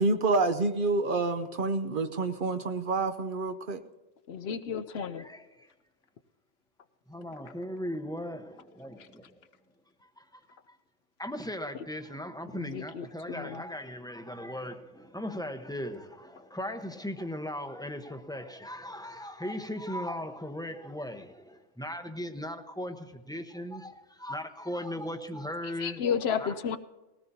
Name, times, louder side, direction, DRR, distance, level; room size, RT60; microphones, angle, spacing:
voice 1, 0.0-3.8, right 3 dB, 55° right, 0.8 m, -28 dB
voice 2, 4.3-5.3 12.5-13.6 25.8-26.8, left 7 dB, 65° left, 0.8 m, -32 dB
voice 3, 5.0-5.7 7.1-9.4 10.2-10.4 10.7-10.8 11.2-26.0 26.4-26.5, left 1 dB, 5° left, 0.8 m, -38 dB
20.0 x 17.0 x 2.7 m
omnidirectional pair, 1.2 m